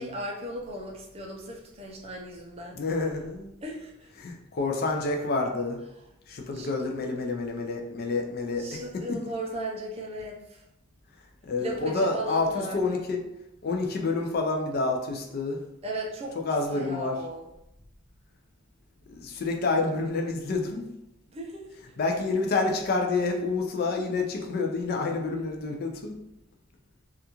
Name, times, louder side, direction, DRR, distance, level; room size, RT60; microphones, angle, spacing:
voice 1, 0.0-2.8 3.6-4.1 6.5-6.7 8.6-10.6 11.6-13.1 15.8-16.3 16.7-17.4 21.3-21.7, right 1 dB, 30° right, -1 dB, 0.4 m, -36 dB
voice 2, 2.7-3.5 4.2-5.8 6.3-9.2 11.4-13.2 13.6-15.6 16.4-17.2 19.1-20.9 22.0-26.1, left 3 dB, 45° left, 2 dB, 0.3 m, -28 dB
2.3 x 2.3 x 2.9 m, 0.88 s
head